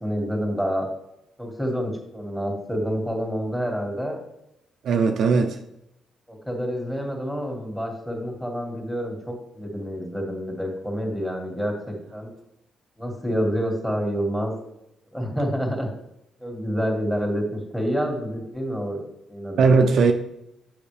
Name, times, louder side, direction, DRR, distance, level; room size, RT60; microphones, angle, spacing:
voice 1, 0.0-0.9 1.4-4.2 5.3-5.4 6.3-12.3 13.0-14.5 15.1-15.9 16.4-19.0 19.3-19.7, equal, 5° left, 2.1 m, -28 dB
voice 2, 4.8-5.6 19.6-20.1, right 4 dB, 65° right, 0.6 m, -18 dB
7.2 x 5.6 x 3.4 m
cardioid pair, 90°, 0 cm